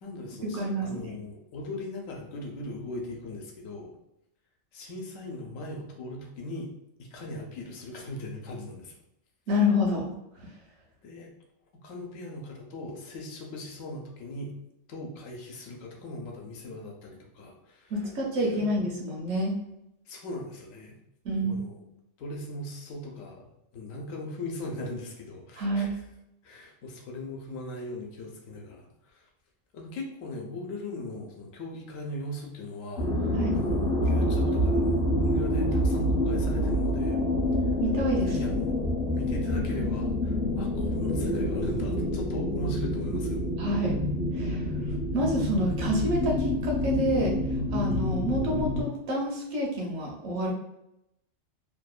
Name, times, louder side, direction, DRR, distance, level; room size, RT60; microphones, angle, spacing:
voice 1, 0.0-3.9 4.7-6.7 7.0-9.0 11.0-11.3 11.8-14.5 14.9-17.9 18.4-18.7 20.1-21.0 21.4-21.8 22.2-25.9 26.4-29.3 29.7-37.2 37.7-37.8 38.2-38.8 39.1-43.5, left 1 dB, 80° left, 1 dB, 1.0 m, -39 dB
voice 2, 0.5-1.1 9.5-10.1 17.9-19.5 21.2-21.6 25.6-25.9 33.3-33.5 37.8-38.5 43.6-44.0 44.3-44.6 45.1-47.4 47.7-50.5, equal, 65° right, -1 dB, 0.9 m, -28 dB
sound 1, 33.0-48.8, left 1 dB, 60° left, 0.8 m, -27 dB
2.8 x 2.1 x 2.3 m, 0.83 s
omnidirectional pair, 1.3 m